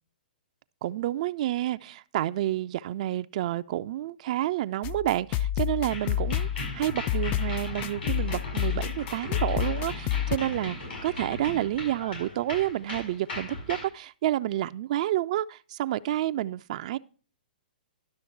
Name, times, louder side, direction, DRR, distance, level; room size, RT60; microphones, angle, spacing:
voice 1, 0.8-17.0, right 13 dB, 50° right, 0.3 m, -29 dB
sound 1, 4.8-10.4, left 11 dB, 30° left, 0.3 m, -29 dB
sound 2, 5.9-13.9, left 2 dB, 85° left, 6.4 m, -38 dB
11.5 x 6.3 x 4.4 m
hypercardioid pair, 120°, 5 cm